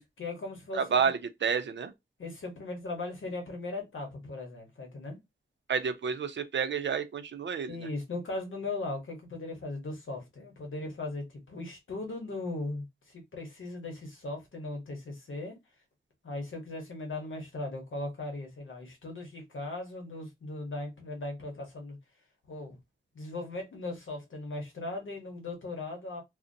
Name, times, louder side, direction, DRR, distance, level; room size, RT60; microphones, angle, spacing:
voice 1, 0.0-1.1 2.2-5.2 7.7-15.5 16.2-22.0 22.5-22.8 23.1-26.2, left 2 dB, 80° left, 1.0 m, -38 dB
voice 2, 0.7-1.9 5.7-7.9, right 6 dB, 65° right, 0.5 m, -30 dB
2.5 x 2.1 x 2.6 m
wide cardioid pair, 105°, 20 cm